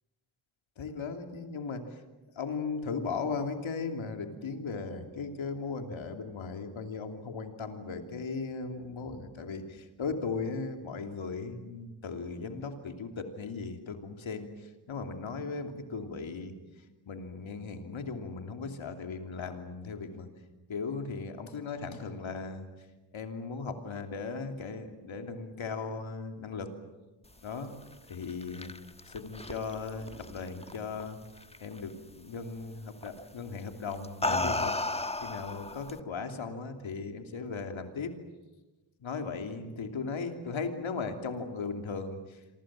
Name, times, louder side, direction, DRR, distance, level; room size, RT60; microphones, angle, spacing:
voice 1, 0.8-1.9 2.3-14.5 14.9-16.6 17.1-20.3 20.7-22.7 23.1-26.7 27.4-27.8 28.1-28.7 29.0-31.2 31.6-34.8 35.2-38.1 39.0-42.2, left 4 dB, 85° left, 5 dB, 3.1 m, -37 dB
sound 1, 28.1-31.0 31.4-31.8 33.0-33.2 33.9-36.0, left 2 dB, 15° left, 1.4 m, -33 dB
27.5 x 24.5 x 7.6 m, 1.1 s
cardioid pair, 50°, 46 cm